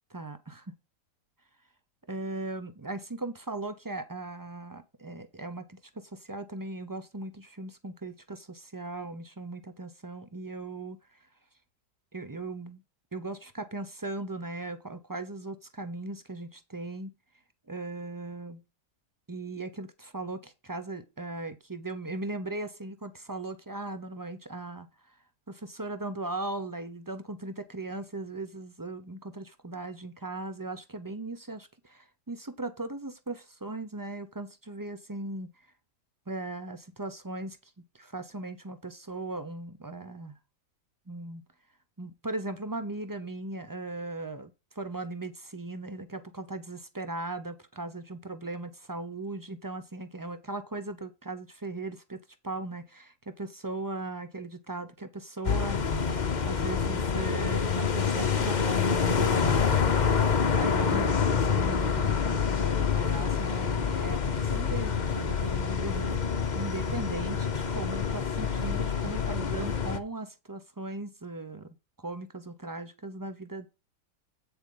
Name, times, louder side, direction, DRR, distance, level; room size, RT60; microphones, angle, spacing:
voice 1, 0.1-0.7 2.1-11.2 12.1-12.8 13.1-17.1 17.7-18.6 19.3-25.2 25.5-35.5 36.3-40.4 41.1-41.4 42.0-55.8 56.4-59.9 60.5-66.2 66.5-73.7, right 2 dB, 30° right, 0.3 m, -38 dB
sound 1, 55.4-70.0, left 6 dB, 35° left, 0.7 m, -27 dB
8.8 x 6.9 x 3.9 m
omnidirectional pair, 1.8 m